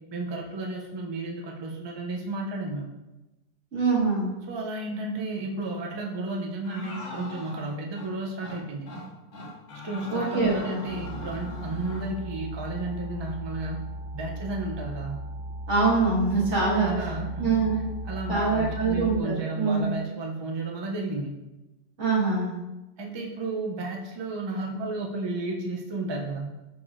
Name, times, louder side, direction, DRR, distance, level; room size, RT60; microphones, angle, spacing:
voice 1, 0.1-3.0 4.4-8.9 9.8-13.8 14.1-15.2 16.6-21.3 23.0-26.6, right 2 dB, 40° right, 0 dB, 0.4 m, -32 dB
voice 2, 3.7-4.3 10.1-10.6 15.7-16.9 17.4-17.8 18.3-19.9 22.0-22.5, right 4 dB, 80° right, -6 dB, 1.9 m, -24 dB
sound 1, 6.6-8.1 8.4-8.6 8.9-9.1 9.3-12.1, left 1 dB, 90° left, 1.3 m, -40 dB
sound 2, 10.9-19.1, right 1 dB, 75° left, 0.9 m, -37 dB
6.1 x 3.0 x 2.4 m, 1.0 s
omnidirectional pair, 1.2 m